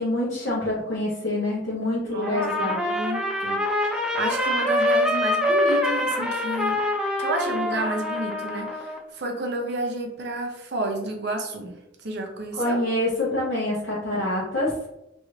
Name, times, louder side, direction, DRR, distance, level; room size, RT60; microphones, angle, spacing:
voice 1, 0.0-2.8 12.5-14.7, left 1 dB, 75° left, -7 dB, 0.9 m, -26 dB
voice 2, 2.0-3.6 3.9-6.8 7.2-11.7 12.0-12.8, right 2 dB, 60° right, 2 dB, 0.6 m, -30 dB
Trumpet, 2.2-9.0, left 1 dB, 5° right, 0.5 m, -25 dB
3.1 x 2.5 x 3.1 m, 0.88 s
head